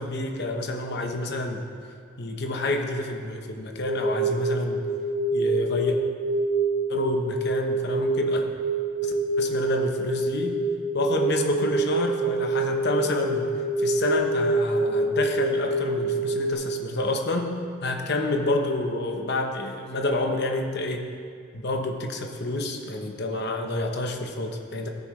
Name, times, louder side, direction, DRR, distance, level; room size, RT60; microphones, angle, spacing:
voice 1, 0.0-1.6 2.2-4.8 5.3-6.0 6.9-8.4 9.0-10.6 10.9-13.5 13.8-17.5 17.8-21.1 21.5-24.9, left 2 dB, 55° left, 3 dB, 0.9 m, -28 dB
sound 1, 3.8-16.5, right 2 dB, 35° right, 2.7 m, -26 dB
14.5 x 9.3 x 3.2 m, 2.2 s
head